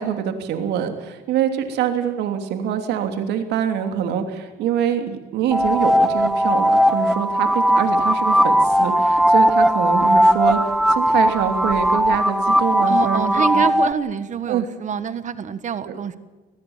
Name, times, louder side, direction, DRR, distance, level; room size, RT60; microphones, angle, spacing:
voice 1, 0.0-10.6 10.9-13.3 13.5-13.6 14.5-14.7 15.8-15.9, right 9 dB, 80° right, 6 dB, 3.2 m, -24 dB
sound 1, 5.5-13.9, equal, ahead, 0.8 m, -18 dB
voice 2, 12.9-16.2, right 7 dB, 45° right, 13 dB, 1.4 m, -26 dB
24.0 x 19.5 x 7.4 m, 1.2 s
cardioid pair, 110°, 17 cm